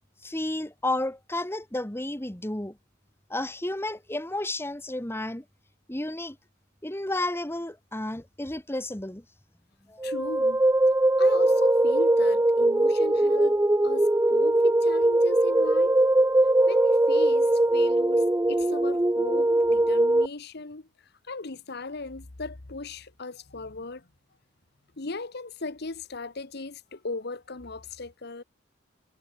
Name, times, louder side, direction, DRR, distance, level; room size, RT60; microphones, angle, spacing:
voice 1, 0.2-2.8 3.3-5.4 5.9-6.4 6.8-9.2 9.9-10.0, left 1 dB, 15° left, 1.6 m, -32 dB
voice 2, 10.0-10.6 11.2-13.6 13.8-16.0 16.7-20.9 21.2-24.1 25.0-28.4, left 3 dB, 60° left, 1.3 m, -38 dB
sound 1, 10.0-20.3, right 1 dB, 10° right, 0.5 m, -21 dB
head